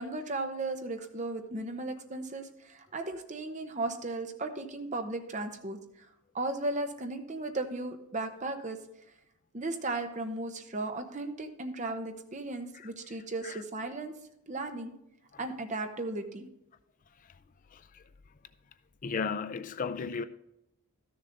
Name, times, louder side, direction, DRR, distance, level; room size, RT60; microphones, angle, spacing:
voice 1, 0.0-5.8 6.3-8.8 9.5-14.1 14.5-14.9 15.4-16.5, right 2 dB, 35° right, 0.9 m, -36 dB
voice 2, 17.7-18.0 19.0-20.2, left 5 dB, 35° left, 0.4 m, -35 dB
13.0 x 6.8 x 3.9 m
head